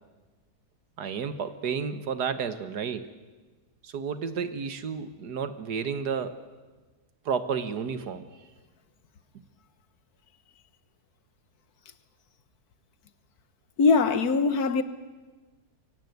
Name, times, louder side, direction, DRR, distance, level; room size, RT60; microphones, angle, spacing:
voice 1, 1.0-3.1 3.8-6.4 7.3-8.2, right 6 dB, 80° right, 1.9 m, -31 dB
voice 2, 13.8-14.8, left 4 dB, 70° left, 1.6 m, -21 dB
23.0 x 17.5 x 9.4 m
omnidirectional pair, 1.7 m